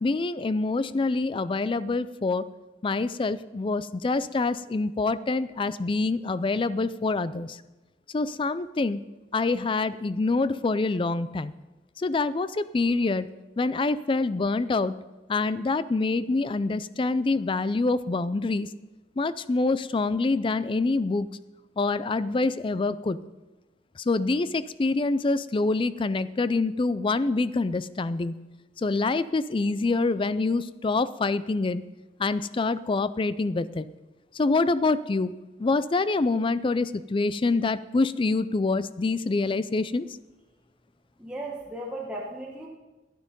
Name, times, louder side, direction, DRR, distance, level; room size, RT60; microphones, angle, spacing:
voice 1, 0.0-2.4 2.8-7.6 8.1-9.0 9.3-11.5 12.0-13.3 13.6-15.0 15.3-18.7 19.2-21.3 21.8-23.2 24.1-28.4 28.8-31.8 32.2-33.8 34.4-35.3 35.6-40.1, left 3 dB, 30° left, 16 dB, 0.4 m, -26 dB
voice 2, 41.2-42.7, right 1 dB, 5° right, -4 dB, 1.2 m, -36 dB
13.0 x 9.5 x 5.2 m, 1.1 s
head